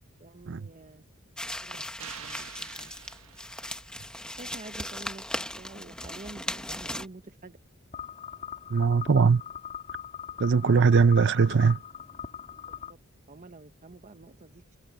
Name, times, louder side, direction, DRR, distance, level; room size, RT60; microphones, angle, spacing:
voice 1, 0.2-1.0 1.6-2.9 4.3-7.6 10.5-11.1 13.3-14.8, right 2 dB, 35° right, 1.0 m, -47 dB
sound 1, 1.4-7.1, left 1 dB, 5° left, 1.0 m, -38 dB
sound 2, 2.0-4.2, right 9 dB, 90° right, 1.3 m, -47 dB
sound 3, 7.9-12.9, left 8 dB, 40° left, 2.9 m, -41 dB
voice 2, 8.7-9.4 10.4-11.8, right 5 dB, 60° right, 0.6 m, -20 dB
head